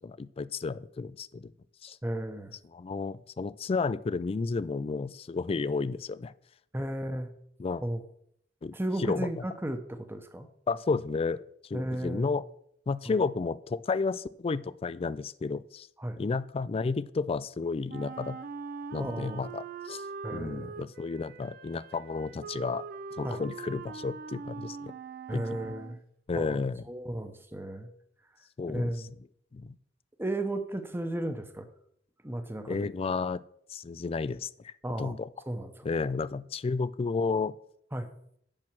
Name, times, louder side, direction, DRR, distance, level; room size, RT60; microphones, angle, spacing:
voice 1, 0.0-1.5 1.8-2.0 2.7-6.3 7.6-7.8 8.6-9.3 10.7-12.4 12.9-15.9 16.2-18.4 18.9-20.1 20.3-22.8 23.2-24.9 25.3-25.7 26.3-26.8 28.6-29.0 29.5-29.8 32.7-33.4 33.7-35.3 35.8-37.5, left 4 dB, 30° left, 18 dB, 0.3 m, -32 dB
voice 2, 2.0-2.6 6.7-7.3 7.8-8.0 8.7-10.5 11.7-12.3 13.1-13.2 16.0-16.2 19.0-19.4 20.2-20.8 23.2-23.4 25.3-26.0 26.3-27.9 28.7-29.1 30.2-31.7 32.2-32.9 34.8-35.2 35.5-35.8 37.9-38.1, right 1 dB, 10° right, 8 dB, 0.9 m, -34 dB
Wind instrument woodwind instrument, 17.9-26.0, right 5 dB, 55° right, 0.6 m, -42 dB
8.9 x 6.0 x 6.0 m, 0.70 s
head